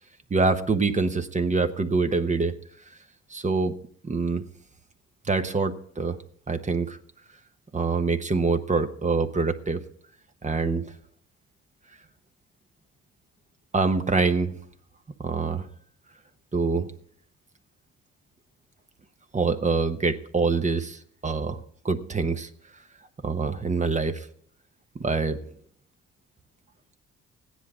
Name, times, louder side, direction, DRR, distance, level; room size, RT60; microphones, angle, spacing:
voice 1, 0.3-2.5 3.3-3.8 4.0-4.4 5.3-6.2 6.5-7.0 7.7-9.8 10.4-10.9 13.7-14.5 15.2-15.7 16.5-16.9 19.3-22.5 23.2-24.3 25.0-25.4, right 4 dB, 25° right, 7 dB, 0.9 m, -25 dB
15.0 x 10.0 x 4.9 m, 0.62 s
cardioid pair, 90°, 30 cm